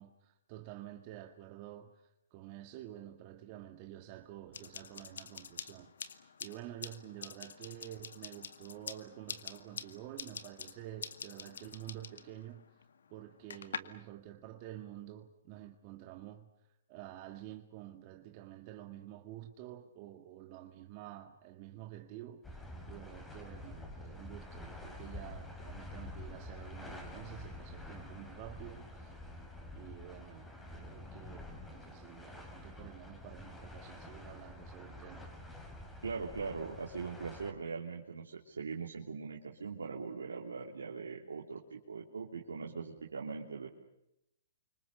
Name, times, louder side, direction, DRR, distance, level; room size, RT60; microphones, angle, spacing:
voice 1, 0.0-16.5 16.9-22.6 22.9-29.1 29.7-35.3, right 13 dB, 40° right, 1.9 m, -49 dB
sound 1, 4.5-13.8, left 6 dB, 75° left, 2.0 m, -47 dB
sound 2, 22.4-37.5, left 1 dB, 10° left, 4.7 m, -48 dB
voice 2, 36.0-43.7, right 5 dB, 90° right, 3.0 m, -41 dB
29.5 x 25.5 x 6.7 m
hypercardioid pair, 135°, 0 cm